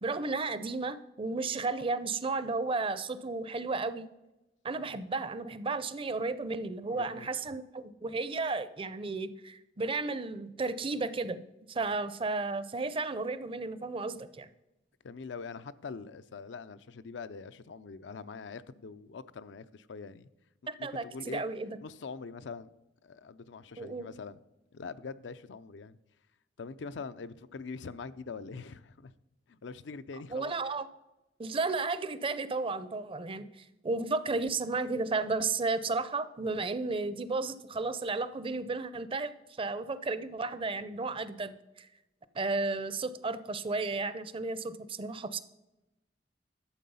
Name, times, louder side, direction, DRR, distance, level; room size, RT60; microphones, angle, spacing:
voice 1, 0.0-4.1 4.6-11.4 11.7-14.5 20.7-21.8 23.8-24.1 30.3-30.9 31.4-33.4 33.8-39.3 39.6-41.9 42.3-45.4, right 3 dB, 30° right, 0.5 m, -33 dB
voice 2, 6.9-7.3 15.0-20.3 20.8-21.4 21.8-22.7 23.0-24.4 24.7-26.0 26.6-29.1 29.5-30.5, left 4 dB, 75° left, 0.5 m, -43 dB
11.5 x 7.5 x 5.5 m
head